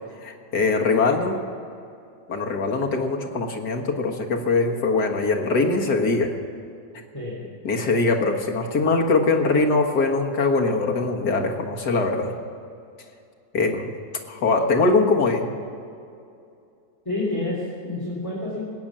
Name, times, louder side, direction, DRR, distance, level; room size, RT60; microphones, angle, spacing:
voice 1, 0.2-1.4 2.3-6.3 7.6-12.3 13.5-13.9 14.3-15.5, left 3 dB, 70° left, 2 dB, 2.0 m, -22 dB
voice 2, 17.0-18.7, left 2 dB, 10° left, -7 dB, 3.1 m, -28 dB
19.0 x 8.8 x 7.4 m, 2.5 s
omnidirectional pair, 1.8 m